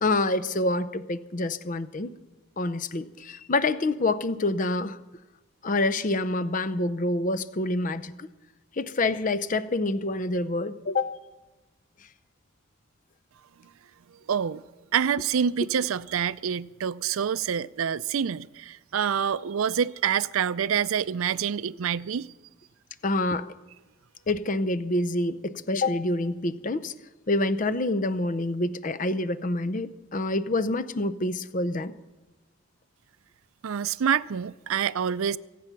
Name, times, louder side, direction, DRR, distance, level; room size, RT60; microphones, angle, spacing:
voice 1, 0.0-2.1 2.6-5.0 5.6-8.3 8.8-11.1 23.0-23.5 24.3-26.9 27.3-31.9, left 2 dB, 35° left, 0.6 m, -27 dB
voice 2, 14.3-14.6 14.9-22.3 33.6-35.4, right 8 dB, 75° right, 0.4 m, -27 dB
24.5 x 8.5 x 5.9 m
head